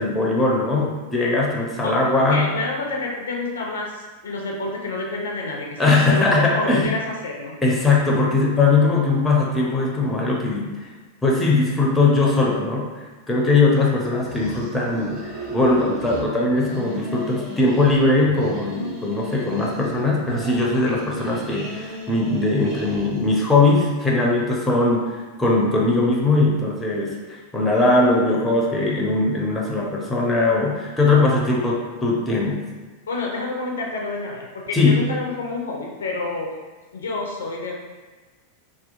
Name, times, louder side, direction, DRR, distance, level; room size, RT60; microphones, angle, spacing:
voice 1, 0.0-2.5 5.8-6.9 7.6-10.8 11.2-12.9 13.3-25.1 25.4-32.6 34.7-35.0, left 3 dB, 10° left, -2 dB, 0.5 m, -20 dB
voice 2, 1.8-7.6 20.8-21.0 33.1-36.5 36.9-37.7, left 3 dB, 65° left, -1 dB, 0.4 m, -29 dB
sound 1, 14.2-16.2 16.5-18.0 18.2-20.0 20.2-23.4, equal, 30° right, 1.2 m, -36 dB
2.7 x 2.2 x 2.5 m, 1.3 s
figure-of-eight pair, 90°, 0 cm